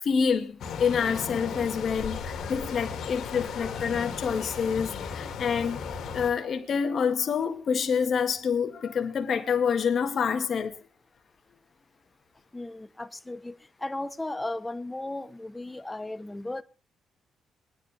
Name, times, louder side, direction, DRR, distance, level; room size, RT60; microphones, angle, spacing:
voice 1, 0.0-10.7, left 6 dB, 55° left, 1.9 m, -27 dB
sound 1, 0.6-6.3, left 6 dB, 70° left, 2.5 m, -35 dB
voice 2, 12.5-16.6, left 2 dB, 15° left, 1.1 m, -36 dB
22.5 x 9.9 x 3.5 m
cardioid pair, 90°, 0 cm